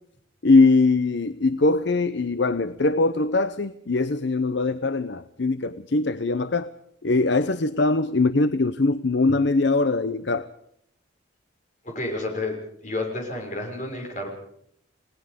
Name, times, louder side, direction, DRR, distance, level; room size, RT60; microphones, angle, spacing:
voice 1, 0.4-6.7 7.0-10.5, left 3 dB, 60° left, 0.7 m, -21 dB
voice 2, 11.8-12.6 12.8-14.3, left 2 dB, 40° left, 6.2 m, -30 dB
30.0 x 18.5 x 5.2 m
head